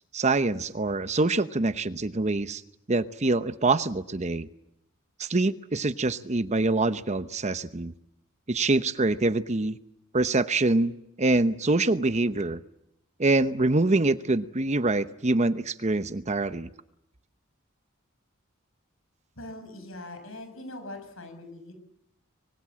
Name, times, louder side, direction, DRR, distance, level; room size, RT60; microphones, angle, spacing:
voice 1, 0.1-2.6 2.9-4.5 5.2-7.9 8.5-9.8 10.1-12.6 13.2-16.7, right 2 dB, 35° right, 12 dB, 0.9 m, -25 dB
voice 2, 19.4-21.7, left 1 dB, 70° left, 8 dB, 7.1 m, -41 dB
25.0 x 23.5 x 7.6 m, 0.80 s
head